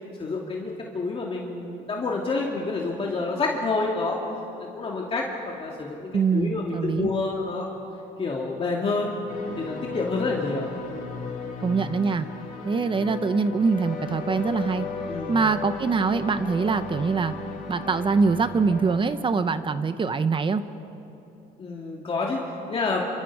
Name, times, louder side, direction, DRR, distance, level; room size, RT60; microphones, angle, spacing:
voice 1, 0.2-4.2 4.6-7.7 8.2-9.1 9.6-10.7 15.1-15.4 21.6-23.0, left 3 dB, 35° left, -2 dB, 2.4 m, -28 dB
voice 2, 6.1-7.1 11.6-12.3 12.6-14.9 15.3-17.3 17.7-20.6, right 4 dB, 30° right, 11 dB, 0.9 m, -24 dB
sound 1, 9.3-19.0, left 4 dB, 60° left, 5.3 m, -36 dB
28.0 x 25.5 x 4.9 m, 2.9 s
cardioid pair, 110°, 17 cm